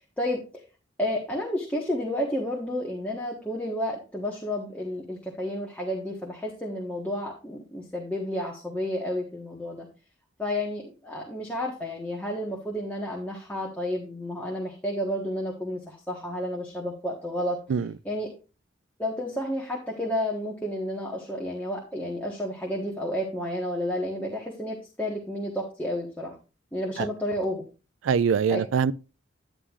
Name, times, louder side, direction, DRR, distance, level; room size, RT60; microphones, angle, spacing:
voice 1, 0.2-0.6 1.0-9.9 10.4-17.6 18.0-18.3 19.0-26.3 26.7-27.6 28.5-28.6, left 1 dB, 10° left, 1.3 m, -31 dB
voice 2, 28.0-28.9, right 6 dB, 85° right, 0.4 m, -23 dB
9.9 x 9.7 x 2.4 m
head